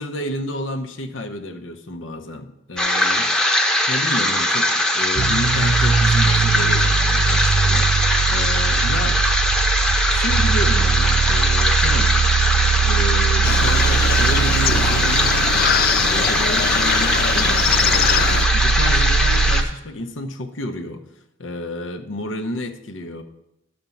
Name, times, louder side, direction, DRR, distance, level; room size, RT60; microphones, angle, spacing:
voice 1, 0.0-3.3 3.9-9.2 10.1-12.2 12.7-21.1 21.4-23.2, left 1 dB, 80° left, 5 dB, 0.9 m, -31 dB
sound 1, 2.8-19.6, left 1 dB, 5° left, 0.8 m, -20 dB
sound 2, 5.2-19.6, right 5 dB, 55° right, 0.4 m, -21 dB
sound 3, 13.4-18.4, left 9 dB, 50° left, 0.3 m, -23 dB
12.0 x 4.4 x 7.1 m, 0.86 s
head